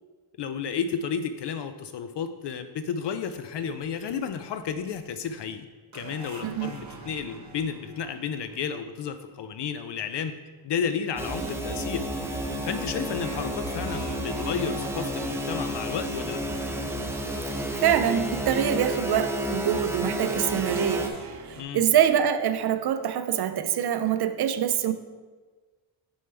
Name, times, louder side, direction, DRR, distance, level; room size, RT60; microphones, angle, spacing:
voice 1, 0.4-5.7 5.9-10.3 10.6-12.0 12.6-16.4 21.6-21.8, left 7 dB, 60° left, 0.5 m, -32 dB
sound 1, 5.9-9.4 13.1-17.2 17.5-17.6 20.6-21.6, right 4 dB, 35° right, 0.9 m, -45 dB
sound 2, 11.2-21.1, equal, 5° right, 0.5 m, -31 dB
voice 2, 17.8-24.9, right 9 dB, 55° right, 0.5 m, -25 dB
6.6 x 5.4 x 3.3 m
cardioid pair, 100°, 49 cm